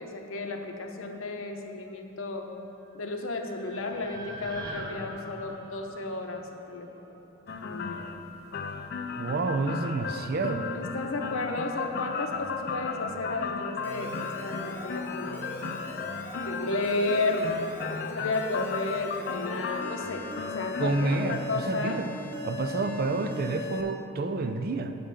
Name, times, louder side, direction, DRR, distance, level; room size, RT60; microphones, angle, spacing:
voice 1, 0.0-2.5 2.9-6.9 7.6-8.0 10.7-15.5 16.4-22.0, left 2 dB, 75° left, 4 dB, 0.8 m, -33 dB
sound 1, 2.9-7.1, right 1 dB, 20° right, 0.9 m, -43 dB
sound 2, 7.5-21.4, left 5 dB, 50° left, 0.4 m, -35 dB
voice 2, 9.2-10.7 20.8-22.1 22.4-24.9, right 3 dB, 45° right, 8 dB, 0.4 m, -29 dB
Alarm, 13.8-23.8, left 2 dB, 10° left, 0.8 m, -41 dB
8.5 x 5.6 x 6.6 m, 2.9 s
head